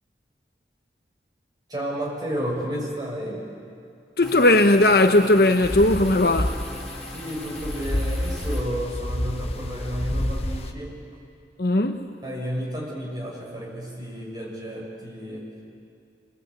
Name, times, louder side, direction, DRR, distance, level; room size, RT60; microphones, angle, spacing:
voice 1, 1.7-3.5 7.1-11.0 12.2-15.5, equal, 25° right, -3 dB, 6.0 m, -32 dB
voice 2, 4.2-6.6 11.6-12.1, left 2 dB, 55° left, 6 dB, 1.0 m, -18 dB
sound 1, 4.2-8.6, left 1 dB, 5° left, 3.1 m, -39 dB
sound 2, 5.6-10.7, left 1 dB, 35° left, 1.0 m, -29 dB
24.5 x 20.5 x 8.3 m, 2.3 s
head